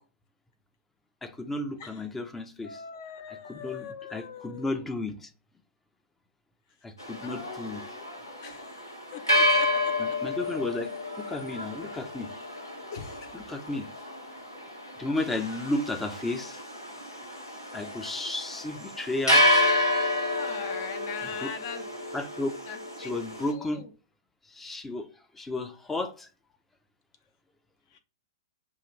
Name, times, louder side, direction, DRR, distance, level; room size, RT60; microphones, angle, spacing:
voice 1, 1.2-2.8 3.5-5.3 6.8-7.8 10.0-12.3 13.3-13.9 15.0-16.6 17.7-19.4 21.4-21.5 22.1-22.5 23.0-23.9 24.5-25.1 25.3-26.3, left 2 dB, 10° left, 0.6 m, -33 dB
voice 2, 2.6-4.9 7.2-8.0 8.4-8.9 9.1-9.9 12.9-13.4 20.2-21.9 22.7-23.2 23.5-23.9 27.9-28.0, left 7 dB, 50° left, 0.8 m, -41 dB
sound 1, 7.0-23.5, left 1 dB, 90° left, 1.4 m, -30 dB
5.6 x 2.5 x 3.2 m
figure-of-eight pair, 105°, 2 cm